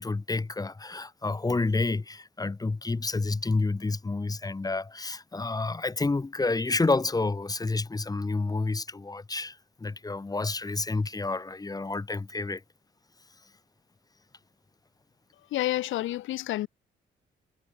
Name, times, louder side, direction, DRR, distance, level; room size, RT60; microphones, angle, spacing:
voice 1, 0.0-12.6, left 3 dB, 20° left, 1.2 m, -29 dB
voice 2, 15.5-16.7, left 15 dB, 80° left, 0.7 m, -29 dB
cardioid pair, 90°, 20 cm